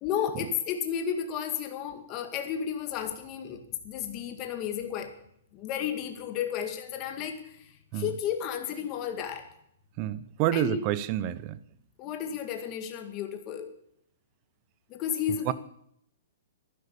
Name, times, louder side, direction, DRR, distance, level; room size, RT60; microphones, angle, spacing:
voice 1, 0.0-5.1 5.5-7.5 7.9-9.5 10.5-10.8 12.0-13.7 14.9-15.5, left 8 dB, 25° left, 2.0 m, -32 dB
voice 2, 10.0-11.6 15.5-15.6, right 13 dB, 30° right, 0.8 m, -28 dB
12.0 x 11.5 x 8.4 m
hypercardioid pair, 160°, 0 cm